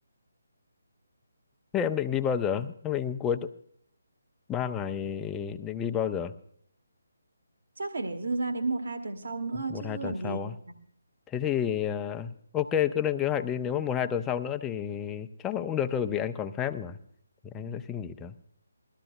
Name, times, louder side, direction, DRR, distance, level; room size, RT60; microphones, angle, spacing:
voice 1, 1.7-3.5 4.5-6.3 9.5-10.6 11.3-17.0 17.4-18.3, left 9 dB, 10° left, 7 dB, 0.5 m, -30 dB
voice 2, 7.8-10.4 10.7-10.8, right 3 dB, 60° right, 5 dB, 1.2 m, -32 dB
20.5 x 13.5 x 2.4 m, 0.67 s
figure-of-eight pair, 145°, 0 cm